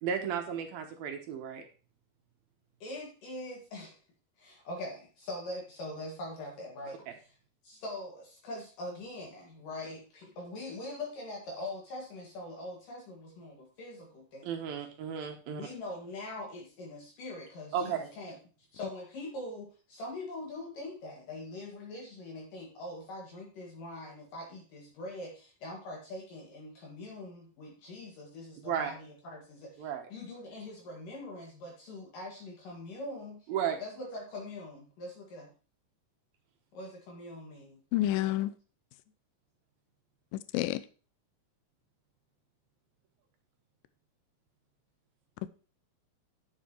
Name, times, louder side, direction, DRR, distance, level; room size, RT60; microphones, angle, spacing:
voice 1, 0.0-1.6 7.1-7.2 14.4-15.7 17.7-18.1 28.6-28.9 29.8-30.1 33.5-33.8, right 8 dB, 75° right, 4 dB, 2.9 m, -34 dB
voice 2, 2.8-4.0 4.4-7.1 7.6-14.5 15.5-18.4 18.7-33.5 33.8-35.5 36.7-37.8, left 1 dB, 60° left, -1 dB, 3.5 m, -43 dB
voice 3, 37.9-38.5 40.3-40.8, left 14 dB, 80° left, 15 dB, 2.1 m, -29 dB
10.0 x 7.4 x 4.5 m, 0.37 s
omnidirectional pair, 4.4 m